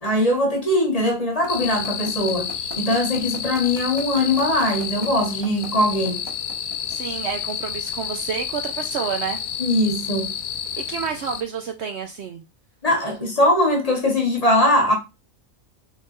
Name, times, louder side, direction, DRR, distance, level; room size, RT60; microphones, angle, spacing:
voice 1, 0.0-2.5 2.8-6.2 9.6-10.3 12.8-14.9, left 1 dB, 30° left, 1.1 m, -21 dB
sound 1, 1.4-7.1, right 1 dB, 20° right, 0.9 m, -37 dB
sound 2, 1.5-11.4, left 8 dB, 85° left, 1.1 m, -30 dB
voice 2, 6.9-9.4 10.8-12.4, right 6 dB, 65° right, 0.7 m, -29 dB
3.7 x 3.0 x 3.8 m
omnidirectional pair, 1.4 m